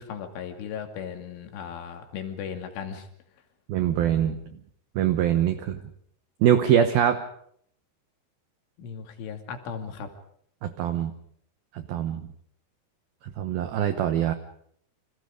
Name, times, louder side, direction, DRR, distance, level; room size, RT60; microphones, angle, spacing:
voice 1, 0.0-3.1 8.8-10.1, left 7 dB, 70° left, 5 dB, 4.9 m, -36 dB
voice 2, 3.7-4.4 5.0-5.8 6.4-7.2 10.6-11.1 11.7-12.3 13.4-14.3, right 10 dB, 80° right, 9 dB, 2.1 m, -23 dB
29.0 x 26.0 x 5.2 m, 0.66 s
omnidirectional pair, 5.9 m